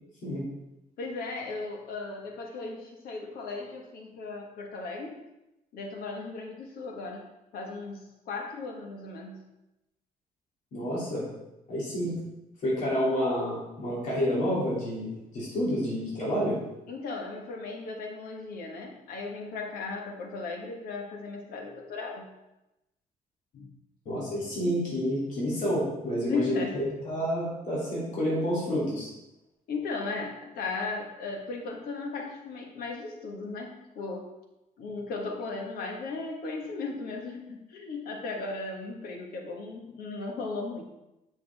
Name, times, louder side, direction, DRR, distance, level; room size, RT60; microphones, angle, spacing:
voice 1, 1.0-5.2 5.7-7.3 7.5-9.4 15.6-15.7 16.9-22.3 23.5-23.7 26.3-26.7 29.7-34.3 34.8-40.8, left 3 dB, 85° left, 1 dB, 1.4 m, -36 dB
voice 2, 10.7-11.3 11.7-12.2 12.6-16.6 24.0-29.1, equal, 55° left, -7 dB, 2.9 m, -29 dB
7.2 x 6.2 x 3.5 m, 0.95 s
cardioid pair, 155°, 15 cm